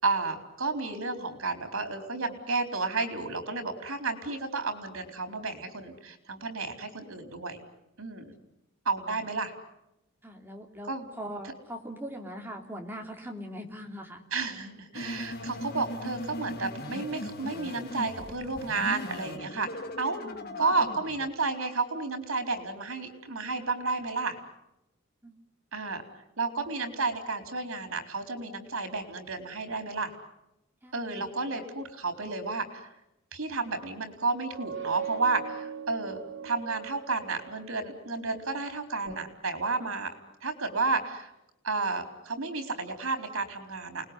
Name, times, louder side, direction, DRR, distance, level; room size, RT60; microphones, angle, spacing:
voice 1, 0.0-7.6 8.0-8.3 8.8-9.5 10.8-11.0 11.4-11.5 14.3-20.2 20.6-24.4 25.7-26.0 26.4-30.1 30.9-32.9 33.3-36.2 36.4-40.1 40.4-41.3 41.6-44.1, right 3 dB, 90° right, 6 dB, 4.1 m, -32 dB
voice 2, 10.2-14.2 18.7-18.9 25.2-25.4 30.8-31.3 39.8-39.9, equal, 10° right, 2 dB, 3.1 m, -41 dB
sound 1, 14.9-21.3, left 1 dB, 50° left, 2.1 m, -39 dB
sound 2, 34.3-37.9, right 8 dB, 60° right, 4.2 m, -40 dB
29.0 x 20.0 x 9.8 m, 0.90 s
head